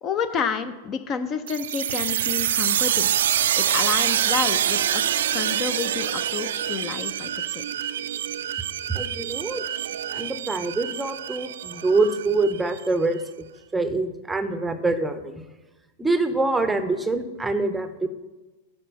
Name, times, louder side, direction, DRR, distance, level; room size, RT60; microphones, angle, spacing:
voice 1, 0.0-3.1 3.5-5.0 5.3-7.6, left 6 dB, 35° left, 11 dB, 0.5 m, -29 dB
sound 1, 1.5-12.9, right 10 dB, 70° right, 0.3 m, -26 dB
voice 2, 8.9-9.6 10.1-13.2 13.7-15.4 16.0-18.1, right 3 dB, 10° right, 9 dB, 0.6 m, -25 dB
9.0 x 4.2 x 6.2 m, 1.1 s
hypercardioid pair, 100°, 0 cm